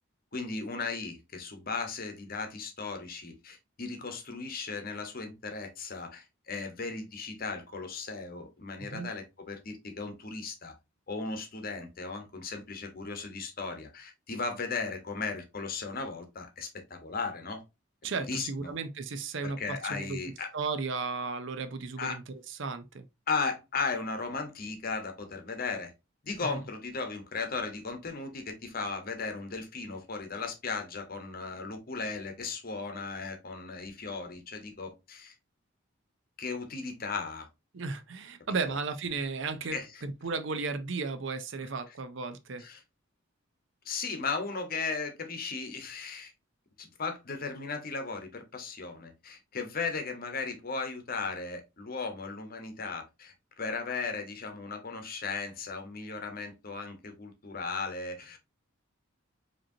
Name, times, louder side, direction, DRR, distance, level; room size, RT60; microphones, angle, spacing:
voice 1, 0.3-10.7 11.1-17.6 18.2-18.7 19.4-20.5 22.0-22.2 23.3-25.9 26.2-35.3 36.4-37.5 39.7-39.9 42.6-42.8 43.8-46.3 46.8-58.4, left 4 dB, 45° left, 0.9 m, -36 dB
voice 2, 18.0-20.2 20.5-23.1 26.5-26.6 37.7-42.7, right 4 dB, 65° right, 0.6 m, -35 dB
5.1 x 3.0 x 2.7 m
head